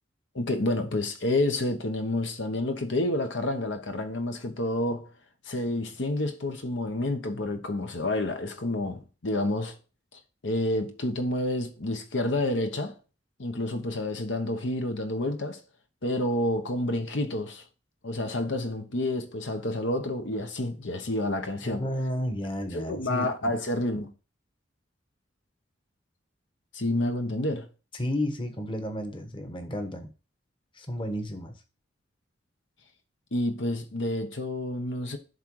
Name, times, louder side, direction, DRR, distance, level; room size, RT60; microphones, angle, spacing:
voice 1, 0.3-5.1 5.5-9.7 10.1-13.0 13.4-15.6 16.0-17.6 18.0-21.8 22.7-24.1 26.7-27.7 33.3-35.2, left 1 dB, 70° left, 1.0 m, -29 dB
voice 2, 21.6-23.5 27.9-30.1 30.7-31.6, equal, 25° left, 1.2 m, -32 dB
11.0 x 3.8 x 4.7 m
head